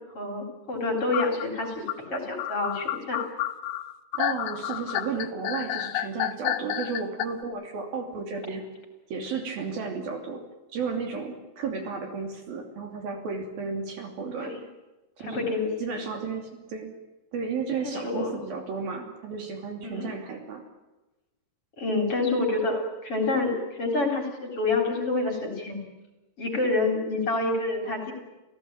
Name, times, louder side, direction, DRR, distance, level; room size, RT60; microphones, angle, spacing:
voice 1, 0.1-3.2 14.4-14.6 15.2-16.0 17.8-18.4 19.8-20.1 21.8-25.8 26.4-28.1, left 2 dB, 35° left, 3 dB, 4.1 m, -28 dB
sound 1, 1.1-7.3, left 13 dB, 90° left, 3.4 m, -30 dB
voice 2, 4.1-8.6 9.1-10.4 10.7-14.5 15.2-15.5 15.8-16.9 17.3-20.6, right 5 dB, 60° right, 4 dB, 4.5 m, -33 dB
28.0 x 17.0 x 8.8 m, 1.1 s
omnidirectional pair, 5.0 m